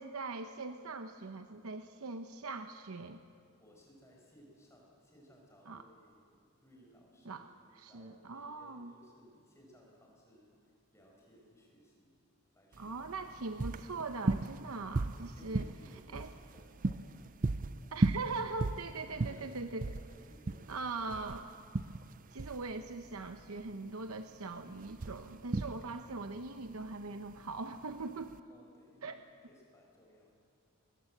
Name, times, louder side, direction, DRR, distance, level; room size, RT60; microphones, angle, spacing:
voice 1, 0.0-3.2 5.7-5.8 7.2-7.4 7.8-8.9 12.8-15.6 16.1-16.3 17.9-19.9 20.7-21.5 22.3-28.4 29.0-29.2, right 3 dB, 80° right, 8 dB, 0.8 m, -41 dB
voice 2, 3.6-7.5 7.9-12.2 12.5-13.0 14.7-18.1 19.1-19.6 20.1-20.8 28.5-30.5, equal, 15° left, -1 dB, 5.1 m, -62 dB
sound 1, 12.7-28.4, right 2 dB, 35° right, 0.5 m, -37 dB
23.0 x 20.5 x 7.9 m, 2.3 s
head